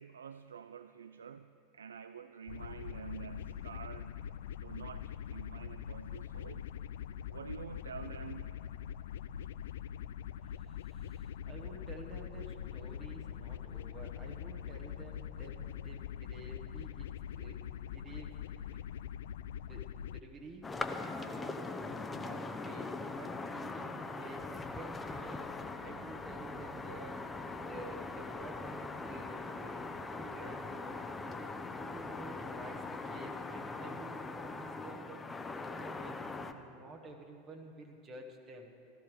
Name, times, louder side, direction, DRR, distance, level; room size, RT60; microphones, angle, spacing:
voice 1, 0.0-4.3 4.6-6.7 7.3-8.6, right 7 dB, 80° right, 12 dB, 0.3 m, -48 dB
sound 1, 2.5-20.2, left 9 dB, 70° left, 0.3 m, -43 dB
voice 2, 10.4-18.3 19.2-19.3 19.6-20.7 21.0-27.2 27.6-31.0 31.8-35.2 35.6-38.7, right 2 dB, 35° right, 2 dB, 1.5 m, -51 dB
sound 2, 20.6-36.5, left 3 dB, 15° left, 0.9 m, -41 dB
16.0 x 13.0 x 5.0 m, 2.8 s
hypercardioid pair, 85°, 0 cm